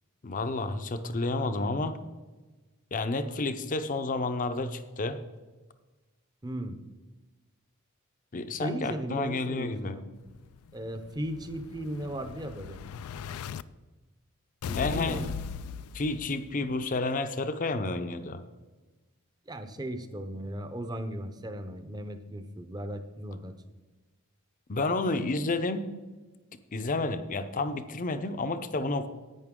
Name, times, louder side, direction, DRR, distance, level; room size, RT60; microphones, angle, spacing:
voice 1, 0.2-2.0 2.9-5.2 8.3-10.0 14.8-15.2 15.9-18.4 24.7-25.9 26.7-29.1, left 2 dB, 35° left, 10 dB, 0.6 m, -30 dB
voice 2, 6.4-6.8 8.5-10.0 10.7-12.8 14.7-15.3 19.5-23.5, right 1 dB, 20° right, 9 dB, 0.6 m, -36 dB
Explosion, 10.3-13.6 14.6-16.6, left 7 dB, 80° left, 0.3 m, -39 dB
11.0 x 9.0 x 3.7 m, 1.2 s
head